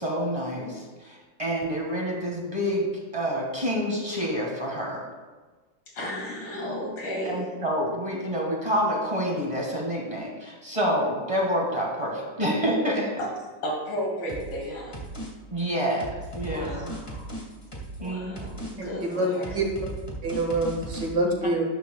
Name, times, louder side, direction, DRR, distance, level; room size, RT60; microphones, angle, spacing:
voice 1, 0.0-2.9 3.1-5.0 7.2-13.1 15.5-16.1 16.3-17.0 18.0-18.4 18.7-18.8, equal, 20° right, -2 dB, 1.6 m, -28 dB
voice 2, 5.9-7.5 13.2-13.3 13.6-15.1 16.4-17.3 18.0-19.6, equal, 65° left, -3 dB, 3.0 m, -34 dB
sound 1, 14.3-14.6 14.9-15.3 15.6-18.1 18.4-18.7 19.0-21.1, right 1 dB, 15° left, 1.6 m, -37 dB
voice 3, 18.8-19.3 19.5-19.7 20.2-21.6, right 2 dB, 65° right, 0 dB, 2.3 m, -26 dB
12.5 x 10.0 x 2.3 m, 1.3 s
omnidirectional pair, 2.1 m